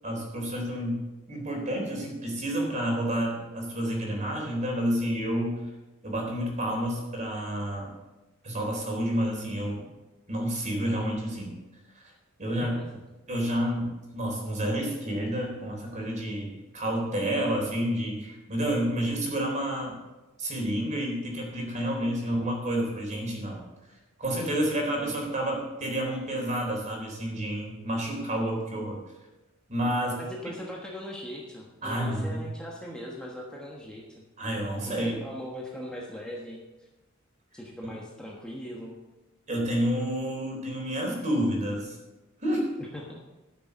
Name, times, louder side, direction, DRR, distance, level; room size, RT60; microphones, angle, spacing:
voice 1, 0.0-5.6 6.0-7.9 8.4-9.8 10.3-11.6 12.0-12.1 12.4-12.8 13.3-20.0 20.4-23.6 24.2-29.0 29.7-30.2 31.8-32.4 34.4-35.2 37.8-37.9 39.5-42.0 42.4-42.7, equal, 35° right, 0 dB, 3.7 m, -29 dB
voice 2, 30.2-34.2 34.9-36.6 37.5-38.9 42.8-43.2, equal, 5° left, -3 dB, 1.3 m, -40 dB
13.5 x 6.7 x 6.7 m, 1.1 s
head